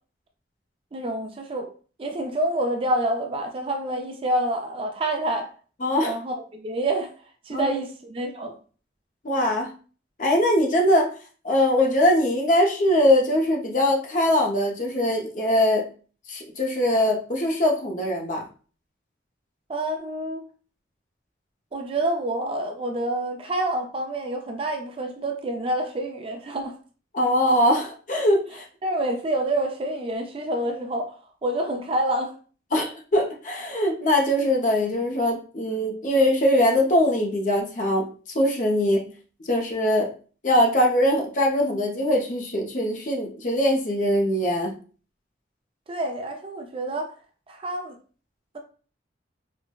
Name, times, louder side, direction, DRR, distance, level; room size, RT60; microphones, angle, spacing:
voice 1, 0.9-1.7 2.0-5.5 6.1-7.1 7.5-8.5 19.7-20.4 21.7-26.8 28.8-31.1 31.4-32.3 45.9-47.1 47.5-48.0, right 1 dB, 30° right, 0.4 m, -27 dB
voice 2, 5.8-6.2 7.5-7.7 9.2-9.7 10.2-11.1 11.4-15.9 16.3-18.4 27.1-28.6 32.7-39.0 39.4-40.1 40.4-44.7, left 1 dB, 45° left, 0.6 m, -22 dB
4.3 x 2.1 x 2.2 m
head